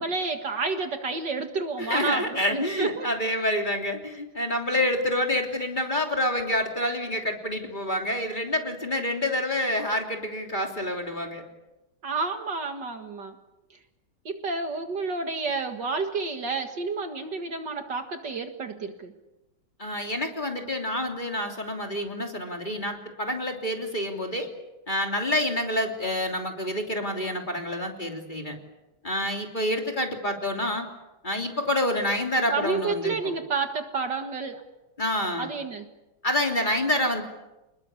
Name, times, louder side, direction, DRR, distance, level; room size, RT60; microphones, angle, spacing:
voice 1, 0.0-3.1 12.0-13.3 14.3-19.1 32.5-34.6 35.4-35.9, right 4 dB, 55° right, 6 dB, 2.3 m, -30 dB
voice 2, 1.8-11.4 19.8-24.5 24.9-28.6 29.0-30.9 31.2-33.3 35.0-35.5 36.2-37.2, left 1 dB, 20° left, 2 dB, 3.2 m, -28 dB
28.0 x 21.0 x 8.4 m, 0.99 s
omnidirectional pair, 2.3 m